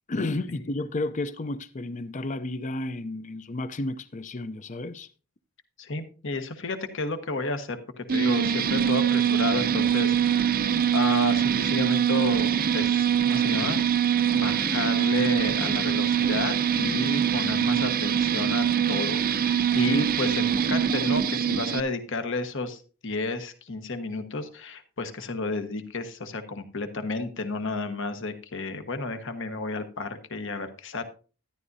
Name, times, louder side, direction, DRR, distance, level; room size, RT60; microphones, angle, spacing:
voice 1, 0.1-5.1, left 2 dB, 35° left, 0.5 m, -32 dB
voice 2, 5.8-10.6 10.9-13.8 14.3-31.0, left 3 dB, 55° left, 1.3 m, -31 dB
sound 1, 8.1-21.8, right 8 dB, 40° right, 0.5 m, -24 dB
13.0 x 11.0 x 2.7 m
head